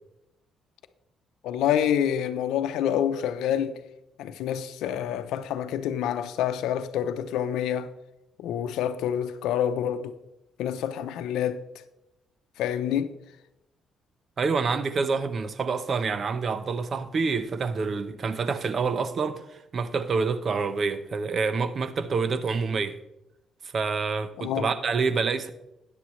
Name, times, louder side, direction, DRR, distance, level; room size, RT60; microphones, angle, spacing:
voice 1, 1.4-3.8 4.2-7.9 8.4-10.1 10.6-11.6 12.6-13.1 24.4-24.7, left 9 dB, 90° left, 0.7 m, -27 dB
voice 2, 14.4-23.0 23.6-25.5, right 4 dB, 50° right, 0.9 m, -27 dB
13.0 x 9.7 x 3.2 m
cardioid pair, 90°, 0 cm